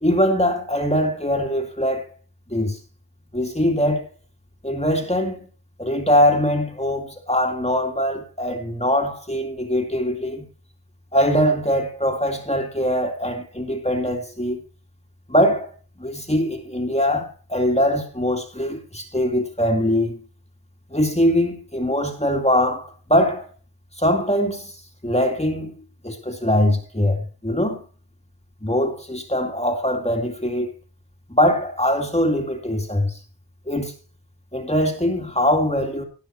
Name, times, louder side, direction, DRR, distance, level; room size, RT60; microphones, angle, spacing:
voice 1, 0.0-2.1 2.5-2.8 3.3-4.1 4.6-5.4 5.8-10.5 11.1-14.6 15.3-15.7 16.0-20.2 20.9-23.5 24.0-24.8 25.0-25.7 26.0-27.8 28.6-30.7 31.3-33.2 33.7-33.9 34.5-36.0, equal, 15° left, 2.3 m, -22 dB
17.5 x 6.2 x 4.4 m
wide cardioid pair, 60°, 44 cm